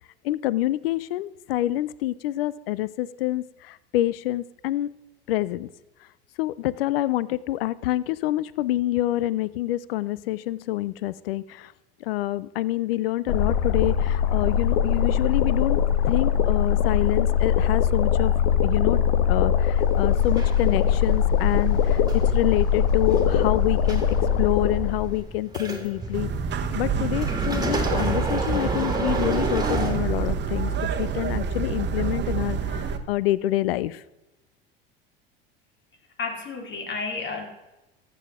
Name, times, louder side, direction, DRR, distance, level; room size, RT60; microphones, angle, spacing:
voice 1, 0.2-4.9 5.3-5.7 6.4-11.7 12.0-18.3 18.6-24.0 24.4-26.3 26.7-30.7 31.0-34.0, left 15 dB, 80° left, 19 dB, 0.5 m, -27 dB
sound 1, 13.3-25.2, left 8 dB, 65° left, 0.9 m, -22 dB
sound 2, 19.8-30.6 31.3-31.4, right 2 dB, 15° right, 1.9 m, -31 dB
sound 3, 26.1-33.0, right 6 dB, 40° right, 1.0 m, -27 dB
voice 2, 36.2-37.5, left 4 dB, 40° left, 4 dB, 2.4 m, -31 dB
13.5 x 7.7 x 3.6 m, 1.0 s
hypercardioid pair, 75°, 29 cm